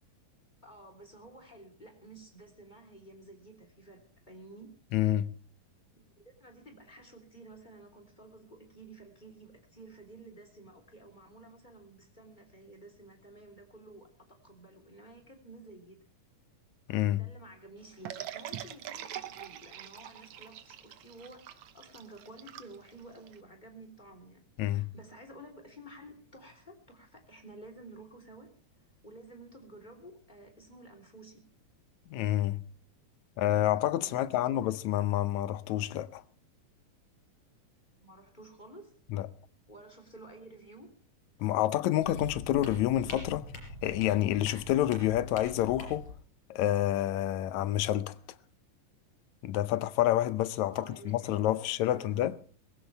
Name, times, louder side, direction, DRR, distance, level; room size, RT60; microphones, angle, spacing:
voice 1, 0.6-4.7 6.2-16.0 17.1-28.5 29.0-31.5 34.0-34.8 38.0-39.0 39.7-41.0 50.7-52.4, right 2 dB, 15° left, 3.3 m, -52 dB
voice 2, 4.9-5.3 16.9-17.3 24.6-24.9 32.1-32.6 33.4-36.2 39.1-39.3 41.4-43.5 43.8-46.1 46.5-48.2 49.4-52.3, left 13 dB, 70° left, 1.9 m, -28 dB
sound 1, 18.1-23.4, right 11 dB, 65° right, 2.1 m, -43 dB
sound 2, 42.0-46.1, left 3 dB, 45° left, 5.4 m, -43 dB
20.5 x 16.5 x 3.3 m
omnidirectional pair, 3.8 m